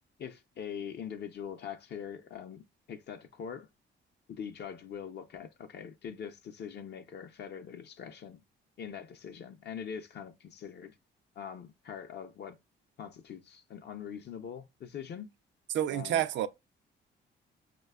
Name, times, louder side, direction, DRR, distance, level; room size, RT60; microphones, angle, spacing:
voice 1, 0.2-2.6 2.9-3.7 4.3-8.4 8.8-10.9 11.4-12.6 13.0-15.3 15.9-16.2, left 8 dB, 55° left, 0.6 m, -43 dB
voice 2, 15.7-16.5, right 11 dB, 70° right, 0.4 m, -29 dB
4.8 x 2.2 x 2.2 m
cardioid pair, 90°, 20 cm